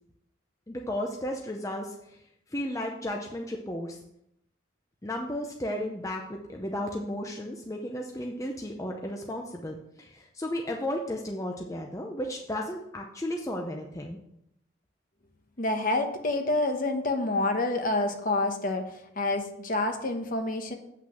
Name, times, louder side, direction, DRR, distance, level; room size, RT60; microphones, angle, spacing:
voice 1, 0.7-2.2 2.5-4.0 5.0-14.2, left 1 dB, 15° left, 1 dB, 0.6 m, -34 dB
voice 2, 15.6-20.7, left 2 dB, 40° left, 5 dB, 1.1 m, -28 dB
8.2 x 6.1 x 5.8 m, 0.79 s
head